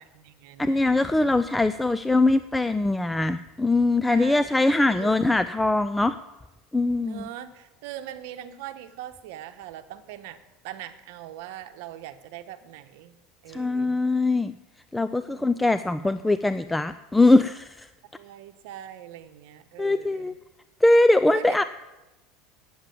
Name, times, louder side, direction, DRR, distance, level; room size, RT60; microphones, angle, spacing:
voice 1, 0.0-1.6 4.1-4.5 4.9-5.1 7.0-10.4 10.6-13.2 13.4-14.0 15.3-16.4 18.1-20.3 21.3-21.6, right 12 dB, 70° right, 8 dB, 1.0 m, -41 dB
voice 2, 0.6-6.2 6.7-7.2 13.5-14.5 14.9-17.9 19.8-20.3 20.8-21.6, left 2 dB, 5° left, 12 dB, 0.3 m, -22 dB
9.4 x 7.5 x 9.0 m, 1.0 s
supercardioid pair, 125°, 0 cm